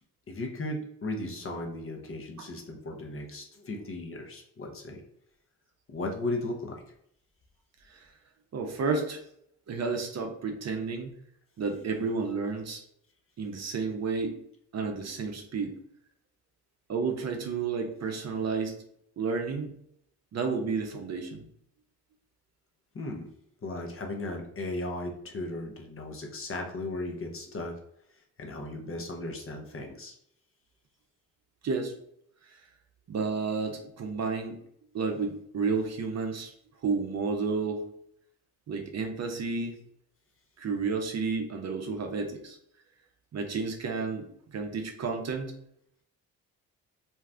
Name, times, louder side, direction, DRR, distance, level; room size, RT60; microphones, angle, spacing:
voice 1, 0.3-5.0 5.9-6.8 22.9-23.3 23.6-27.8 28.4-30.1, left 2 dB, 35° left, 2 dB, 0.8 m, -36 dB
voice 2, 8.5-9.2 9.7-11.1 11.6-12.8 13.4-14.3 14.7-15.7 16.9-18.7 19.2-19.7 20.3-21.4 31.6-31.9 32.5-32.6 33.1-34.6 34.9-36.5 36.8-37.8 38.7-39.8 40.6-42.6 43.3-45.5, right 4 dB, 45° right, 4 dB, 0.7 m, -31 dB
2.7 x 2.3 x 3.3 m, 0.72 s
supercardioid pair, 70°, 37 cm